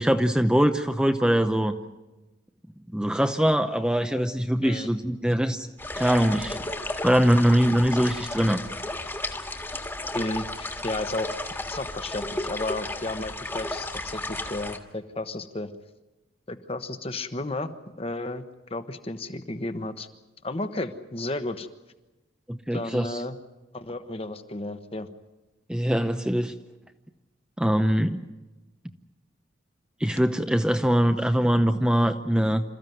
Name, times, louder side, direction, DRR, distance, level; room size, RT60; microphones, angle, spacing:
voice 1, 0.0-1.7 2.9-5.7 5.9-6.6 7.0-8.6 22.5-23.1 25.7-26.5 27.6-28.2 30.0-32.6, equal, 5° right, 7 dB, 0.7 m, -22 dB
sound 1, 5.8-14.8, left 2 dB, 10° left, 1.7 m, -33 dB
voice 2, 10.1-15.7 16.5-17.7 18.0-18.4 18.7-20.1 20.4-21.7 22.7-23.4 23.7-25.1, left 2 dB, 30° left, 9 dB, 1.2 m, -33 dB
27.5 x 14.5 x 9.3 m, 1.1 s
head